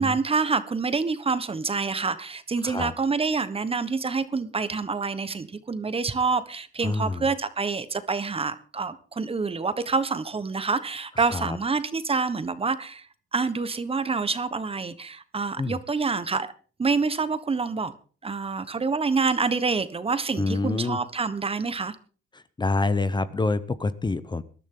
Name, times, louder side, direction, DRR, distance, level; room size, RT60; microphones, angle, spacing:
voice 1, 0.0-13.1 13.3-16.5 16.8-17.9 18.2-21.9, right 4 dB, 30° right, 1.4 m, -27 dB
voice 2, 6.8-7.3 11.2-11.6 15.6-15.8 20.4-21.0 22.3-24.4, left 3 dB, 20° left, 0.9 m, -27 dB
20.0 x 12.5 x 3.9 m
cardioid pair, 90°, 20 cm